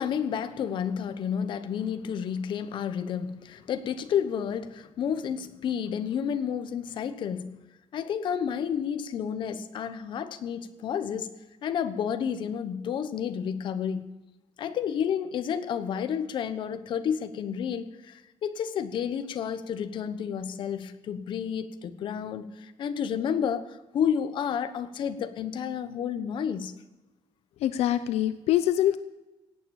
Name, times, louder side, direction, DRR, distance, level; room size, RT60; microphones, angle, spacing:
voice 1, 0.0-7.5 7.9-11.3 11.6-14.1 14.6-26.7, left 8 dB, 50° left, 1.0 m, -31 dB
voice 2, 27.6-29.0, left 12 dB, 80° left, 0.7 m, -24 dB
17.0 x 9.0 x 7.1 m
cardioid pair, 175°, 11 cm